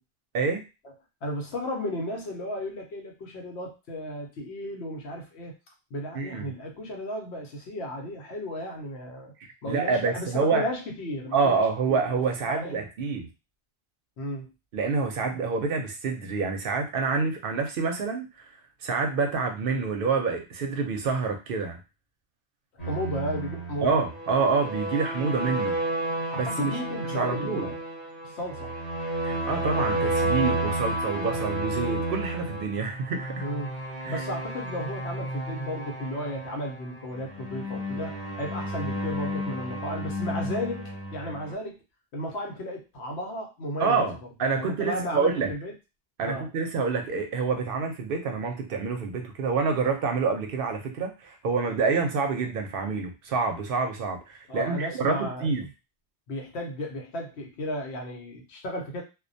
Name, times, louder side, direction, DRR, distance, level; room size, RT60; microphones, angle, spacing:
voice 1, 1.2-5.5 5.9-9.3 9.6-12.0 12.4-12.8 14.2-14.5 22.8-23.9 26.3-27.8 28.2-28.7 33.4-33.8 34.0-41.8 42.1-44.1 44.5-45.7 46.2-46.5 54.5-55.7 56.3-59.0, equal, 85° left, 2 dB, 1.0 m, -34 dB
voice 2, 6.1-6.5 9.6-10.6 11.3-13.3 14.7-18.5 18.8-21.8 23.8-25.8 26.4-26.8 27.1-27.7 29.2-33.5 34.0-34.2 43.8-45.5 46.2-55.6, right 4 dB, 65° right, 4 dB, 0.7 m, -27 dB
sound 1, 22.8-41.5, right 1 dB, 40° left, 0.9 m, -32 dB
2.3 x 2.1 x 2.6 m, 0.28 s
omnidirectional pair, 1.1 m